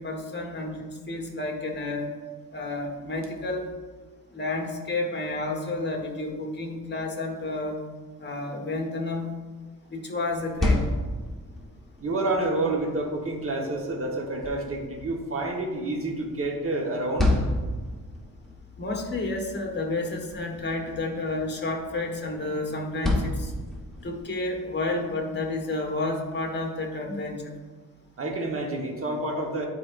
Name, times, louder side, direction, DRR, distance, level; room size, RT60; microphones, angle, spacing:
voice 1, 0.0-2.1 2.5-3.7 4.3-7.8 8.2-9.3 9.9-10.8 18.8-23.5 24.0-27.6, left 2 dB, 30° left, 1 dB, 1.3 m, -30 dB
sound 1, 10.3-24.3, left 1 dB, ahead, 1.3 m, -32 dB
voice 2, 12.0-17.3 28.2-29.7, right 2 dB, 40° right, 1 dB, 1.2 m, -28 dB
10.5 x 4.6 x 2.5 m, 1.4 s
cardioid pair, 100°, 34 cm